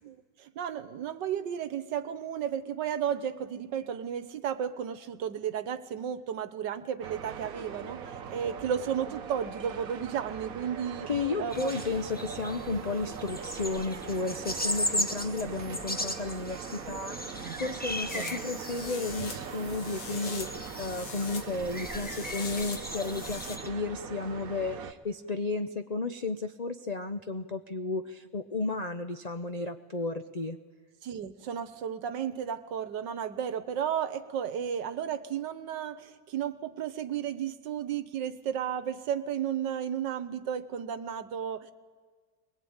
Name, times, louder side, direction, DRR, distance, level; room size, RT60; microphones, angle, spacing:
voice 1, 0.0-11.1 11.4-11.7 17.4-17.5 18.1-18.4 31.0-41.7, right 8 dB, 80° right, 11 dB, 1.7 m, -33 dB
sound 1, 7.0-24.9, right 7 dB, 55° right, 1.4 m, -41 dB
voice 2, 11.1-30.6, left 3 dB, 75° left, 7 dB, 0.3 m, -33 dB
sound 2, 11.5-23.7, left 1 dB, 5° left, 0.8 m, -37 dB
sound 3, 18.1-23.6, left 5 dB, 45° left, 1.5 m, -43 dB
22.0 x 21.0 x 8.8 m, 1.5 s
omnidirectional pair, 1.9 m